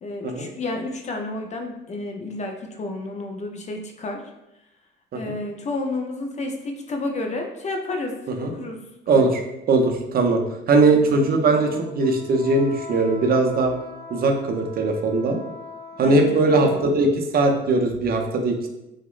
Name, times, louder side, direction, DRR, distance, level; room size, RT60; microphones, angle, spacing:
voice 1, 0.0-4.2 5.1-9.3 16.0-17.1, left 2 dB, 35° left, 3 dB, 0.4 m, -31 dB
voice 2, 9.1-9.4 9.7-10.4 10.7-13.7 14.1-15.4 16.0-18.7, right 3 dB, 50° right, 3 dB, 0.4 m, -20 dB
Wind instrument woodwind instrument, 10.6-16.8, left 1 dB, 70° left, 0.6 m, -42 dB
2.8 x 2.0 x 2.3 m, 0.90 s
cardioid pair, 90°, 20 cm